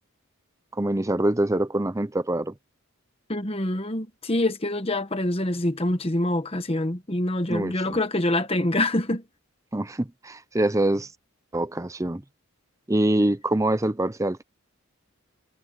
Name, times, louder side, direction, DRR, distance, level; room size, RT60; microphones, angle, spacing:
voice 1, 0.7-2.5 7.5-8.0 9.7-11.1 11.5-12.2 12.9-14.4, right 1 dB, 15° right, 0.6 m, -25 dB
voice 2, 3.3-9.2, left 1 dB, 25° left, 1.2 m, -25 dB
head